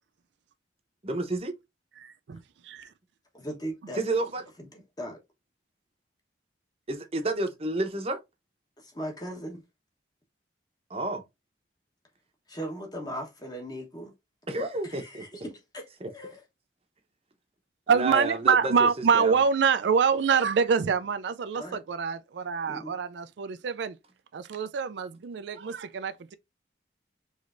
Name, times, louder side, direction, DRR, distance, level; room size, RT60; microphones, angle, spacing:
voice 1, 1.0-1.5 4.0-4.4 6.9-8.2 10.9-11.2 14.5-15.2 16.0-16.1 18.0-18.9 19.1-19.4, right 2 dB, 30° right, 0.8 m, -30 dB
voice 2, 2.0-2.4 2.6-2.9 17.9-24.0 24.3-26.1, right 6 dB, 70° right, 0.4 m, -25 dB
voice 3, 3.3-4.0 4.7-5.2 8.8-9.6 12.5-14.1 14.8-16.4 21.5-21.8 22.7-23.0, equal, 20° left, 1.1 m, -38 dB
4.8 x 3.2 x 2.5 m
head